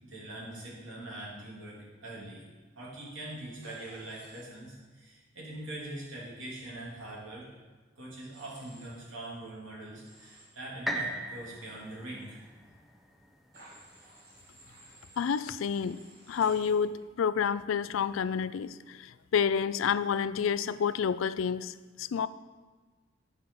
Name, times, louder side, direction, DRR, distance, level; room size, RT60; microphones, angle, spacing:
voice 1, 0.0-2.4 2.8-7.5 8.0-12.4, right 1 dB, 80° right, -5 dB, 3.0 m, -43 dB
Human voice / Train, 3.6-4.4 8.3-8.9 10.0-10.5 13.5-16.7, right 1 dB, 50° right, 2.4 m, -55 dB
sound 1, 10.9-14.8 15.4-15.5, right 1 dB, ahead, 0.6 m, -39 dB
voice 2, 15.2-16.0 16.3-22.3, left 7 dB, 90° left, 15 dB, 0.4 m, -29 dB
9.9 x 5.7 x 5.4 m, 1.3 s
head